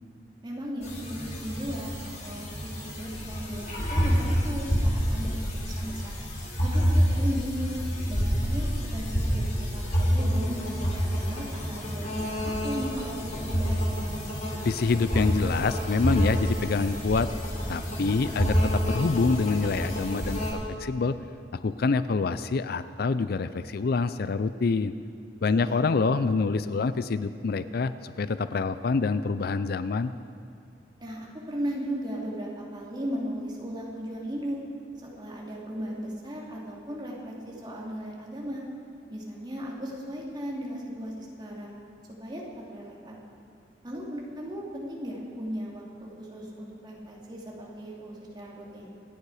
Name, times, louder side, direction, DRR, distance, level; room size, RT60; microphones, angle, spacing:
voice 1, 0.4-5.4 5.6-6.1 6.6-7.8 8.1-14.3 25.6-25.8 31.0-34.6 35.0-38.6 39.1-41.7 42.2-43.2 43.8-48.9, equal, 25° right, -3 dB, 2.8 m, -36 dB
sound 1, 0.8-20.5, equal, 40° left, 3.3 m, -28 dB
voice 2, 14.6-17.3 17.7-21.2 21.6-24.9 25.4-30.1, left 4 dB, 60° left, 13 dB, 0.4 m, -26 dB
26.0 x 9.4 x 4.9 m, 2.3 s
head